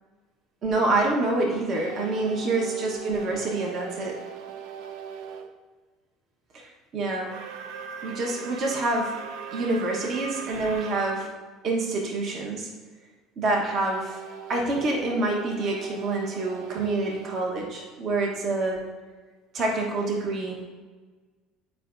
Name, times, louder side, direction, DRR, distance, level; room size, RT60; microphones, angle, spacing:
voice 1, 0.6-4.2 6.5-7.3 8.0-9.2 9.5-11.3 11.6-12.7 13.4-14.2 14.5-18.8 19.5-20.7, right 2 dB, 50° right, 0 dB, 1.2 m, -27 dB
sound 1, 1.6-5.5 7.2-11.3 13.7-18.5, right 7 dB, 75° right, 0.5 m, -40 dB
10.0 x 4.7 x 2.6 m, 1.4 s
supercardioid pair, 110°, 0 cm